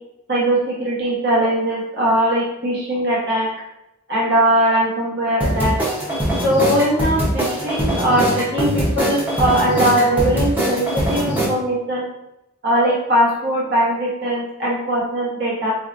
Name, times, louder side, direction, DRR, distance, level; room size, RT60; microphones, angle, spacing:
voice 1, 0.3-3.5 4.1-5.7 6.4-12.1 12.6-15.7, right 1 dB, 50° right, -6 dB, 1.1 m, -20 dB
sound 1, 5.4-11.5, right 1 dB, 10° right, 0.7 m, -21 dB
4.3 x 2.7 x 2.5 m, 0.87 s
head